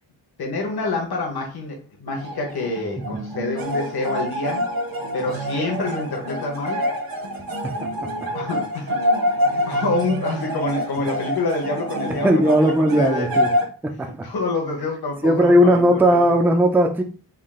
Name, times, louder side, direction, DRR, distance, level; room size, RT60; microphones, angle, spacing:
voice 1, 0.4-4.6 5.1-6.8 8.3-9.0 9.4-13.3 14.2-16.2, left 2 dB, 60° left, 1.1 m, -27 dB
sound 1, 2.1-13.7, equal, 55° right, 0.8 m, -26 dB
voice 2, 12.1-13.5 13.8-14.3 15.2-17.0, equal, 5° right, 0.3 m, -17 dB
3.7 x 2.4 x 3.6 m
wide cardioid pair, 155°, 42 cm